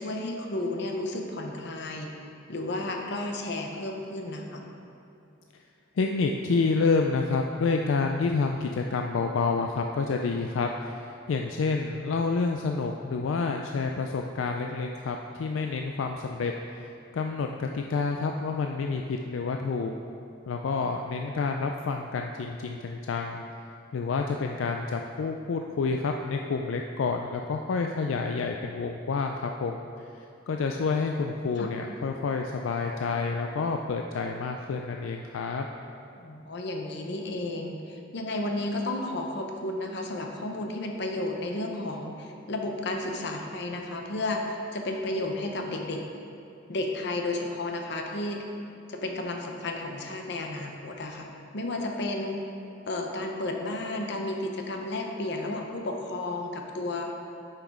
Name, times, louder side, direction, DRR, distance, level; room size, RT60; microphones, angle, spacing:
voice 1, 0.0-2.1 2.5-4.6 31.6-31.7 36.2-46.0 46.7-48.4 48.9-52.4 52.9-57.1, left 2 dB, 60° left, 2 dB, 0.8 m, -32 dB
voice 2, 6.0-16.5 16.8-16.9 17.1-19.9 20.5-23.4 23.9-29.8 30.5-35.7, left 4 dB, 85° left, 3 dB, 0.4 m, -28 dB
6.9 x 5.8 x 4.9 m, 2.6 s
head